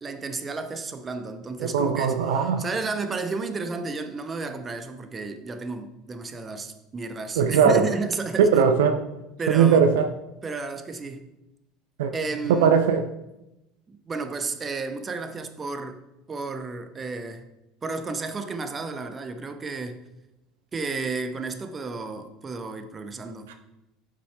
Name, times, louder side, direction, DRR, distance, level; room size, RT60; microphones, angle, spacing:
voice 1, 0.0-8.6 9.4-9.9 10.4-11.2 12.1-12.7 13.9-16.0 16.3-17.4 17.8-20.0 20.7-23.5, right 4 dB, 25° right, 8 dB, 0.9 m, -32 dB
voice 2, 1.6-2.6 7.4-7.9 8.4-9.1 9.5-10.1 12.0-12.1 12.5-13.0 23.5-23.6, right 6 dB, 70° right, 7 dB, 0.5 m, -19 dB
8.0 x 5.5 x 3.4 m, 0.92 s
figure-of-eight pair, 70°, 0 cm